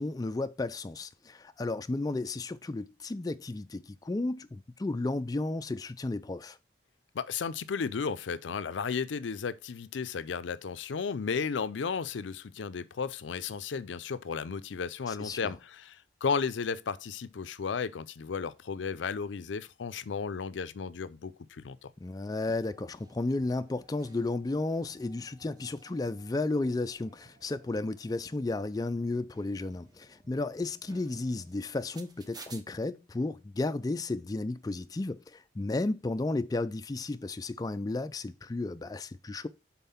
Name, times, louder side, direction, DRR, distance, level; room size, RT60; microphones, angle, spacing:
voice 1, 0.0-6.6 15.1-15.5 22.0-39.5, left 2 dB, 20° left, 0.3 m, -33 dB
voice 2, 7.1-21.9, left 5 dB, 90° left, 0.5 m, -34 dB
sound 1, 22.3-32.6, right 3 dB, 20° right, 0.8 m, -56 dB
5.5 x 4.3 x 5.6 m
head